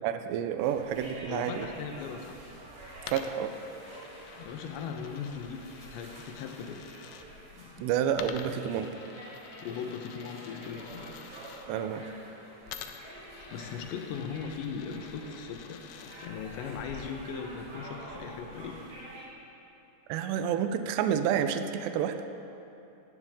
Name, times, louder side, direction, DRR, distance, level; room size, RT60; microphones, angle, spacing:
voice 1, 0.0-1.7 3.1-3.5 7.8-8.9 11.7-12.0 20.1-22.3, right 9 dB, 85° right, 8 dB, 2.4 m, -29 dB
sound 1, 0.6-19.2, right 1 dB, 50° right, 6.0 m, -48 dB
voice 2, 1.3-2.4 4.4-6.8 7.5-7.9 9.6-11.1 11.5-11.6 13.5-18.8, left 6 dB, 75° left, 4 dB, 3.1 m, -39 dB
Coin (dropping), 3.0-7.3 8.1-11.7 12.7-16.3, left 8 dB, 90° left, 2.6 m, -48 dB
18.0 x 16.5 x 3.7 m, 2.9 s
omnidirectional pair, 5.7 m